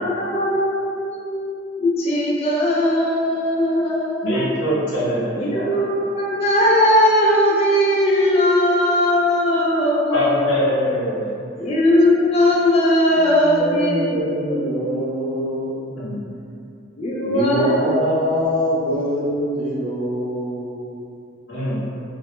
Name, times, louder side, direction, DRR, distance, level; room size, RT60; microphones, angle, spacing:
voice 1, 0.0-4.5 5.4-10.6 11.6-14.2 17.0-17.7 18.9-19.0, left 1 dB, 30° left, -5 dB, 0.3 m, -19 dB
voice 2, 4.2-5.8 10.1-11.3 15.9-16.3 21.5-21.8, equal, 80° left, -8 dB, 0.7 m, -23 dB
voice 3, 13.2-15.8 17.2-21.0, equal, 80° right, -8 dB, 0.5 m, -24 dB
2.1 x 2.0 x 2.9 m, 2.5 s
head